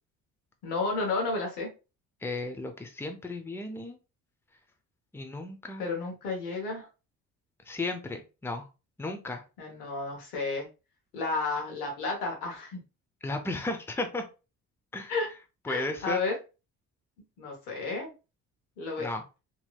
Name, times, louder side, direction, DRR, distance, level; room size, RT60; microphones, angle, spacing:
voice 1, 0.6-1.7 5.8-6.9 9.6-10.7 11.1-12.8 15.1-15.3 15.7-16.3 17.4-18.1 18.8-19.1, left 3 dB, 85° left, 0 dB, 1.1 m, -32 dB
voice 2, 2.2-4.0 5.1-5.9 7.7-8.7 9.0-9.4 13.2-14.2 14.9-15.1 15.6-16.2 19.0-19.2, left 2 dB, 5° left, 5 dB, 0.6 m, -34 dB
3.0 x 2.8 x 2.3 m, 0.30 s
hypercardioid pair, 55°, 44 cm